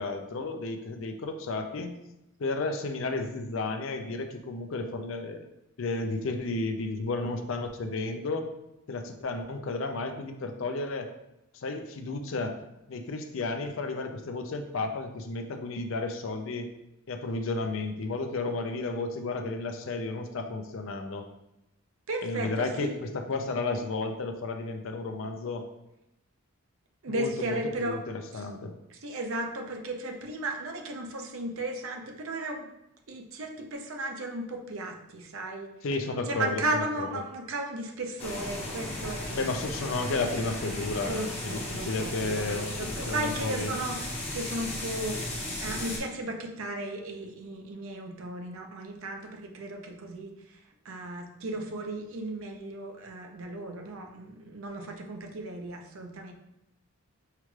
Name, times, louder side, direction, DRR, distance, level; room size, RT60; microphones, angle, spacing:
voice 1, 0.0-1.9 2.4-5.5 5.8-8.5 8.9-11.1 11.5-12.6 12.9-16.7 17.1-21.3 22.2-25.7 27.1-28.7 35.8-37.2 39.3-43.7, left 3 dB, 65° left, 6 dB, 0.5 m, -32 dB
voice 2, 22.1-23.0 27.0-28.0 28.3-28.5 28.9-32.6 33.1-35.7 36.3-39.4 41.0-50.6 50.8-56.3, right 1 dB, 80° right, 3 dB, 0.7 m, -35 dB
sound 1, 38.2-46.0, left 1 dB, 30° left, 0.9 m, -36 dB
5.6 x 2.3 x 3.1 m, 0.88 s
head